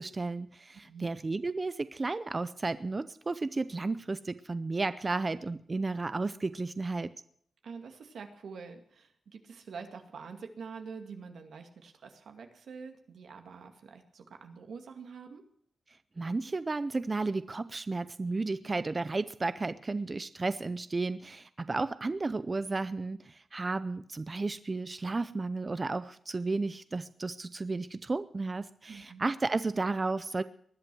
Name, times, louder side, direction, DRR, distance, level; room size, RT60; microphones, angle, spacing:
voice 1, 0.0-7.1 15.9-30.4, right 3 dB, 30° right, 13 dB, 0.6 m, -33 dB
voice 2, 7.6-15.4 28.9-29.2, right 5 dB, 85° right, 5 dB, 2.2 m, -46 dB
20.0 x 11.0 x 6.2 m, 0.64 s
wide cardioid pair, 95°, 0 cm